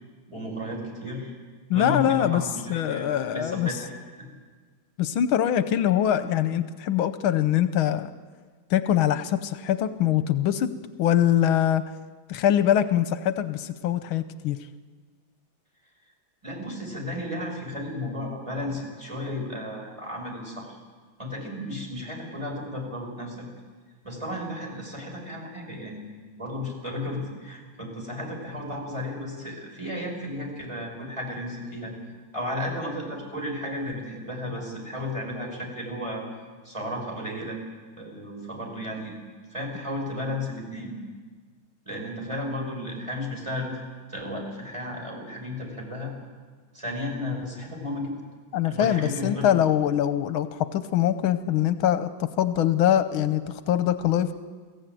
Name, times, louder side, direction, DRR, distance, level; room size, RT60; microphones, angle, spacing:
voice 1, 0.3-1.3 1.7-3.9 4.2-4.3 16.4-20.8 21.2-23.5 24.0-31.9 32.3-36.3 36.6-37.6 38.0-39.1 39.5-40.9 41.9-43.8 44.1-46.1 46.7-48.2 48.6-49.5, left 1 dB, 15° right, -1 dB, 5.3 m, -33 dB
voice 2, 1.7-2.4 2.7-3.7 5.0-8.1 8.7-10.7 11.0-11.8 12.3-14.6 48.5-54.3, left 10 dB, 85° left, 12 dB, 1.6 m, -23 dB
22.5 x 15.0 x 9.2 m, 1.5 s
omnidirectional pair, 2.2 m